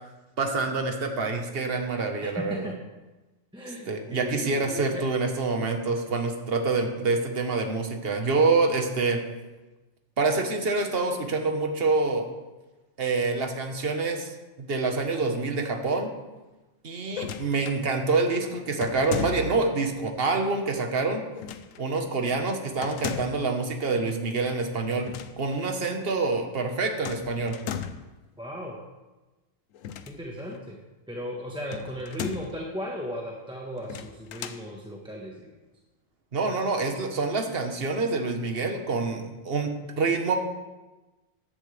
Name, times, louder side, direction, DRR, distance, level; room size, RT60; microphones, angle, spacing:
voice 1, 0.4-2.7 3.9-9.2 10.2-12.3 13.0-14.3 14.6-16.1 16.8-21.2 21.8-25.1 25.4-27.6 36.3-40.4, right 3 dB, 50° right, 4 dB, 1.5 m, -26 dB
voice 2, 2.2-2.7 3.5-5.1 28.4-28.8 30.1-30.8 31.1-35.5, equal, 5° right, -2 dB, 1.2 m, -36 dB
sound 1, 17.1-17.8 18.8-19.7 21.3-21.8 22.8-23.5 24.9-25.4 25.6-25.7 27.0-28.1 29.7-30.6 31.7-32.6 33.8-34.6, left 8 dB, 90° left, 1.1 m, -36 dB
15.5 x 10.5 x 3.4 m, 1.1 s
omnidirectional pair, 1.3 m